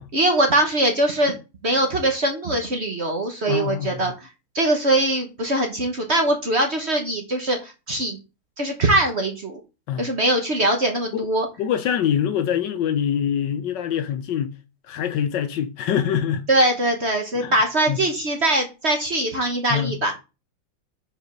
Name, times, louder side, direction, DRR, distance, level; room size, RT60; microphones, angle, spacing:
voice 1, 0.1-1.4 1.6-4.3 4.5-8.2 8.6-9.6 10.0-11.5 16.5-20.1, right 1 dB, 40° right, 1.2 m, -22 dB
voice 2, 3.5-4.1 9.9-10.1 11.1-11.3 11.6-14.5 14.9-16.4 17.3-17.5 17.9-18.0 19.7-20.0, left 9 dB, 70° left, 1.2 m, -24 dB
5.3 x 4.5 x 5.9 m
omnidirectional pair, 2.2 m